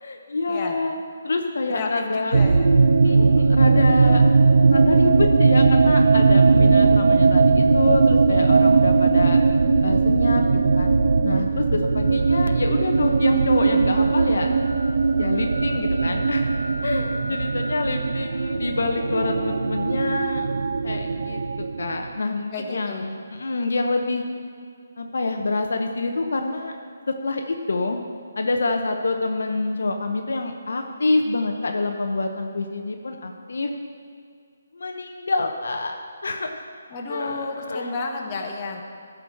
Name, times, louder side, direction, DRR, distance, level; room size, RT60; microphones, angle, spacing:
voice 1, 0.0-0.9 1.2-2.4 3.0-4.2 4.7-9.4 9.8-11.0 11.2-14.5 15.2-16.5 16.8-20.5 20.8-21.4 21.8-24.2 25.0-26.7 27.1-28.0 28.4-33.7 34.7-36.0 36.2-36.7 37.1-37.9, left 3 dB, 70° left, 4 dB, 0.9 m, -26 dB
voice 2, 1.7-2.7 3.0-3.4 22.5-23.0 36.9-38.8, left 3 dB, 30° left, 0 dB, 1.3 m, -32 dB
sound 1, 2.3-22.2, right 4 dB, 65° right, 0.5 m, -19 dB
13.5 x 5.0 x 6.4 m, 2.3 s
figure-of-eight pair, 150°, 0 cm